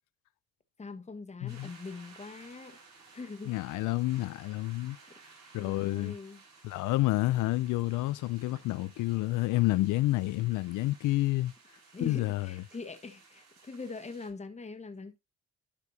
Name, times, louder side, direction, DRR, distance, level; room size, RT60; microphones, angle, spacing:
voice 1, 0.8-2.8 3.1-3.5 5.1-5.2 5.6-6.4 11.9-15.2, left 4 dB, 25° left, 1.3 m, -43 dB
voice 2, 1.4-1.7 3.5-5.0 5.5-6.1 6.6-11.5 12.0-12.5, left 18 dB, 90° left, 0.5 m, -29 dB
sound 1, 1.5-14.3, right 4 dB, 65° right, 5.7 m, -57 dB
12.0 x 4.8 x 2.8 m
cardioid pair, 90°, 30 cm